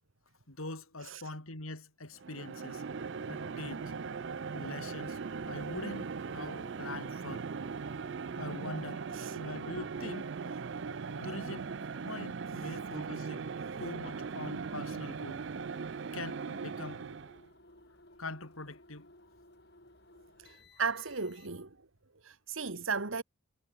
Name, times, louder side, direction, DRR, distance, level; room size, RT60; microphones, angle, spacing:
voice 1, 0.5-2.8 3.3-3.9 4.5-7.5 8.4-9.0 9.3-10.3 11.2-11.7 12.0-13.5 13.8-15.4 16.1-17.1 18.2-19.1, left 2 dB, 90° left, 5.0 m, -43 dB
sound 1, 2.2-17.5, right 5 dB, 60° right, 0.5 m, -39 dB
sound 2, 2.8-21.8, left 1 dB, 50° left, 7.3 m, -58 dB
voice 2, 20.4-21.7 22.2-23.2, right 5 dB, 75° right, 1.8 m, -36 dB
head